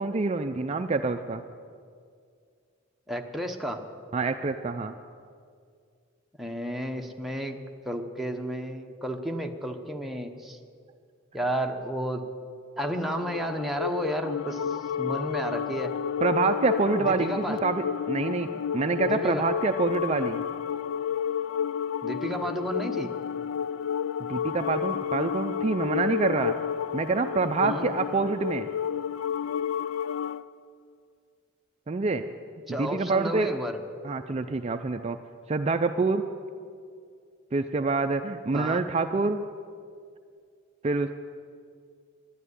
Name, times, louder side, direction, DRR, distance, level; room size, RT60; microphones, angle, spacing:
voice 1, 0.0-1.4 4.1-4.9 16.2-20.4 24.3-26.6 26.9-28.7 31.9-32.2 32.8-33.5 34.0-35.2 35.5-36.3 37.5-39.4 40.8-41.1, right 3 dB, 30° right, 7 dB, 0.4 m, -26 dB
voice 2, 3.1-3.8 6.4-7.6 7.8-10.6 11.3-12.2 12.8-15.9 16.9-17.6 18.4-18.5 19.1-19.4 22.0-23.1 27.6-27.9 32.7-33.8 38.5-38.8, right 1 dB, ahead, 2 dB, 0.9 m, -32 dB
sound 1, 12.8-30.4, left 8 dB, 80° left, 0.4 m, -31 dB
12.5 x 11.0 x 9.6 m, 2.2 s
head